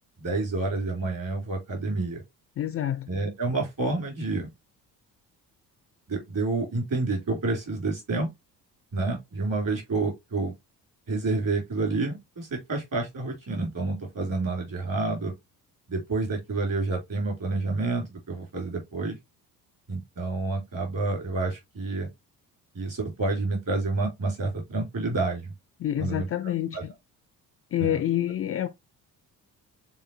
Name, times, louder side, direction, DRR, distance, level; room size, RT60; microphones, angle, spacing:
voice 1, 0.2-2.2 3.1-4.5 6.1-8.3 8.9-10.5 11.1-15.3 15.9-19.2 19.9-22.1 22.7-25.5 26.0-26.2 26.7-26.8 27.8-28.0, right 3 dB, 40° right, 3.1 m, -29 dB
voice 2, 2.6-3.1 25.8-26.9 27.7-28.7, left 11 dB, 30° left, 0.4 m, -27 dB
7.1 x 2.6 x 2.7 m
figure-of-eight pair, 45°, 49 cm